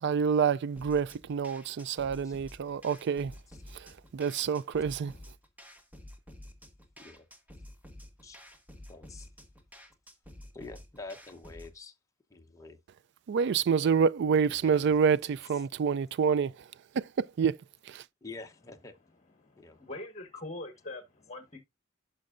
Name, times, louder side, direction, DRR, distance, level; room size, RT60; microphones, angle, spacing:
voice 1, 0.0-3.3 3.7-5.1 13.3-16.6 16.9-17.6 17.8-18.0, right 6 dB, 55° right, 0.3 m, -27 dB
sound 1, 0.8-11.8, left 1 dB, 10° right, 1.2 m, -51 dB
voice 2, 1.9-2.4 4.8-4.9 7.0-7.3 8.2-8.4 8.9-9.3 10.5-11.9 12.3-12.8 14.5-14.8 18.2-18.9 19.6-19.8, left 3 dB, 15° left, 0.9 m, -47 dB
voice 3, 19.4-21.6, left 2 dB, 35° left, 1.4 m, -43 dB
12.0 x 5.3 x 2.5 m
head